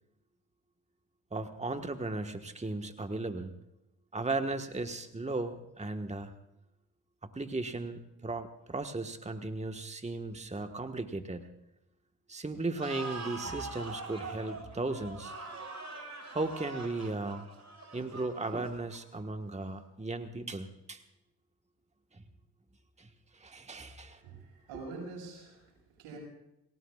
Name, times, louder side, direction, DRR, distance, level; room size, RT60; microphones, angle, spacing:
voice 1, 1.3-3.5 4.1-6.3 7.3-11.5 12.3-15.3 16.3-17.5 17.9-21.0 22.1-22.2 23.0-24.2, right 2 dB, 15° right, 7 dB, 1.5 m, -36 dB
sound 1, 12.8-19.2, right 3 dB, 35° right, 6.2 m, -43 dB
voice 2, 24.0-26.2, right 3 dB, 85° right, -1 dB, 6.4 m, -46 dB
28.0 x 18.0 x 2.4 m, 0.89 s
hypercardioid pair, 45°, 48 cm